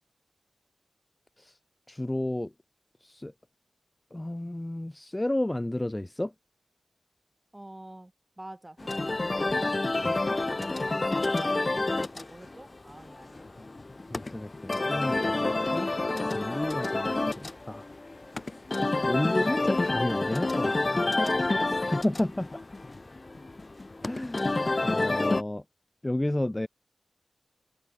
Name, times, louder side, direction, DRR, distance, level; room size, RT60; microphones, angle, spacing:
voice 1, 1.9-2.5 3.0-3.3 4.1-6.3 10.0-10.1 14.1-15.9 16.2-17.9 19.0-21.1 21.9-22.6 24.0-24.5 24.8-25.6 26.0-26.7, left 1 dB, 15° left, 1.6 m, -31 dB
voice 2, 7.5-8.1 8.4-13.7 21.1-22.1, right 1 dB, 15° right, 4.4 m, -45 dB
sound 1, 8.8-25.4, left 2 dB, 35° left, 1.5 m, -29 dB
wide cardioid pair, 80°, 0 cm